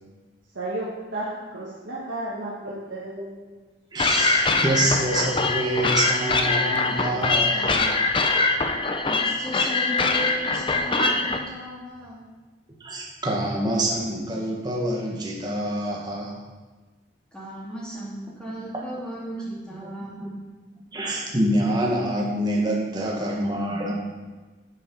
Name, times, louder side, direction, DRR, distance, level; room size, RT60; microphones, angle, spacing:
voice 1, 0.6-3.6, right 1 dB, 80° right, -7 dB, 1.7 m, -33 dB
voice 2, 3.9-8.0 10.2-10.3 10.9-11.2 12.8-16.4 19.8-19.9 20.2-20.3 20.9-23.9, right 1 dB, 20° right, -2 dB, 1.3 m, -26 dB
sound 1, 4.0-11.4, left 3 dB, 25° left, 0.5 m, -23 dB
voice 3, 9.0-12.2 17.3-20.4, equal, 5° left, -7 dB, 2.3 m, -36 dB
9.3 x 5.2 x 5.3 m, 1.3 s
head